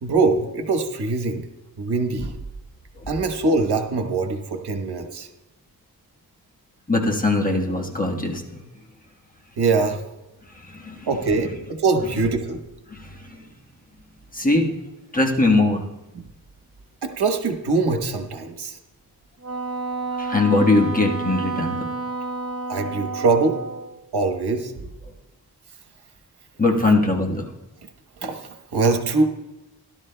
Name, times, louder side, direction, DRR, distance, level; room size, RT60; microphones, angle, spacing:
voice 1, 0.0-1.4 1.8-2.4 3.1-5.3 9.6-10.0 11.1-12.6 17.0-18.8 22.7-23.6 24.1-24.9 28.2-29.2, right 3 dB, 80° right, 5 dB, 1.2 m, -23 dB
voice 2, 6.9-8.6 10.7-11.1 12.9-13.0 14.3-14.7 15.1-15.8 20.2-21.9 26.6-27.4, left 2 dB, 20° left, 0 dB, 1.3 m, -20 dB
Wind instrument woodwind instrument, 19.4-23.9, right 3 dB, 35° right, 1.0 m, -30 dB
17.0 x 12.0 x 2.2 m, 1.0 s
wide cardioid pair, 125°, 39 cm